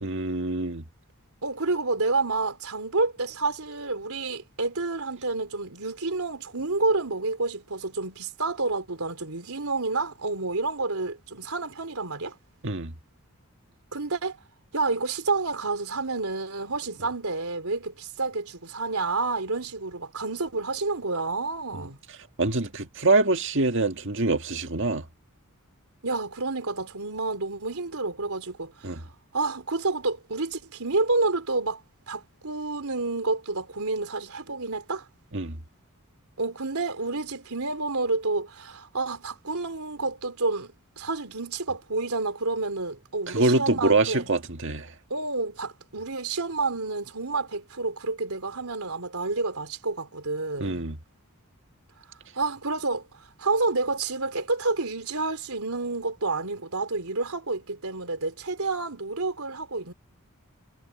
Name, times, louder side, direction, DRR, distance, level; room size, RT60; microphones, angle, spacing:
voice 1, 0.0-0.9 12.6-12.9 21.7-21.8 22.4-25.1 28.8-29.0 35.3-35.6 43.3-44.9 50.6-51.0, right 2 dB, 55° right, 1.8 m, -25 dB
voice 2, 1.4-12.4 13.9-14.4 14.7-22.0 26.0-29.0 29.3-35.1 36.4-44.3 45.1-50.8 52.4-53.1 53.4-59.9, right 3 dB, 75° right, 3.5 m, -29 dB
head